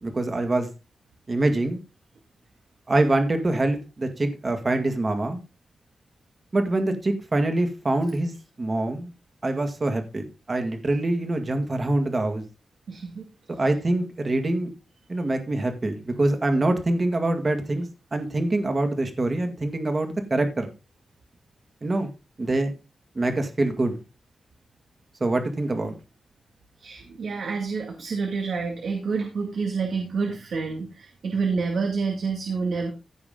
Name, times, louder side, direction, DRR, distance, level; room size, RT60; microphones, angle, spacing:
voice 1, 0.0-0.7 1.3-1.8 2.9-5.4 6.5-8.3 8.6-9.1 9.4-12.4 13.6-14.7 15.1-20.7 21.8-22.1 22.4-22.7 23.2-23.9 25.2-25.9, right 2 dB, 35° right, 2.0 m, -25 dB
voice 2, 12.9-13.3 26.8-32.9, right 4 dB, 85° right, 2.3 m, -28 dB
16.0 x 6.1 x 3.8 m
wide cardioid pair, 125°, 0 cm